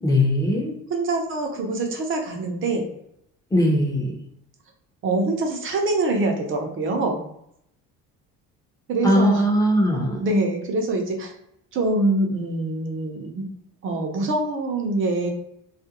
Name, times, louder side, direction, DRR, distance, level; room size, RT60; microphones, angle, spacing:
voice 1, 0.0-0.7 3.5-4.1 9.0-10.2, equal, 10° left, -1 dB, 0.6 m, -19 dB
voice 2, 0.9-2.9 5.0-7.2 8.9-9.4 10.2-11.3 11.7-13.4 13.8-15.3, right 2 dB, 40° right, 3 dB, 0.6 m, -24 dB
2.4 x 2.1 x 2.8 m, 0.74 s
cardioid pair, 120°, 30 cm